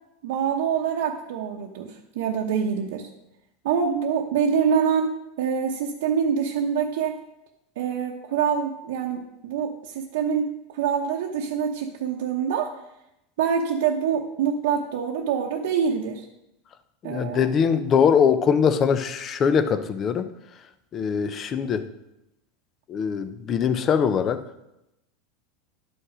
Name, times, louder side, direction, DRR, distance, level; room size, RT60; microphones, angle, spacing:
voice 1, 0.2-3.1 3.6-7.2 7.8-12.7 13.4-16.2 17.0-17.5, right 7 dB, 75° right, -1 dB, 0.9 m, -25 dB
voice 2, 17.0-20.3 20.9-21.8 22.9-24.4, left 7 dB, 30° left, 11 dB, 0.7 m, -22 dB
11.5 x 5.3 x 4.9 m, 0.87 s
supercardioid pair, 145°, 0 cm